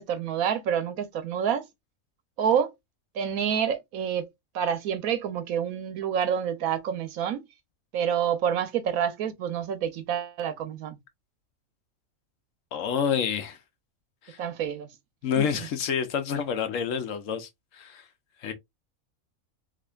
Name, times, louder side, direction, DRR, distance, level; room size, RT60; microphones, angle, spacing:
voice 1, 0.0-1.6 2.4-2.7 3.1-4.3 4.5-7.4 7.9-11.0 14.4-14.9 15.4-15.7, right 8 dB, 90° right, 1.2 m, -28 dB
voice 2, 12.7-13.6 14.2-14.4 15.2-17.5 17.7-18.0 18.4-18.5, left 7 dB, 70° left, 1.1 m, -28 dB
4.9 x 2.5 x 2.3 m
omnidirectional pair, 1.5 m